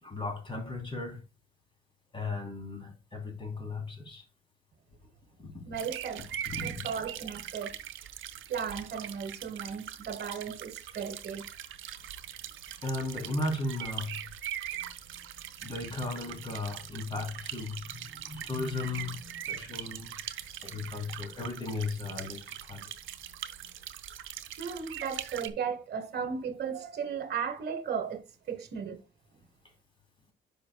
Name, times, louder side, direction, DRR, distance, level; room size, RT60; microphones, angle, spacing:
voice 1, 0.0-1.2 2.1-4.2 5.4-5.6 6.5-6.8 12.8-14.2 15.6-17.9 18.3-20.1 20.6-22.4 22.7-22.8, left 2 dB, 25° left, 3.3 m, -36 dB
voice 2, 5.6-6.3 6.6-7.8 8.5-11.4 24.6-29.0, right 7 dB, 55° right, 1.3 m, -36 dB
sound 1, 5.7-25.5, right 11 dB, 80° right, 0.8 m, -41 dB
10.5 x 5.3 x 2.3 m
cardioid pair, 90°, 20 cm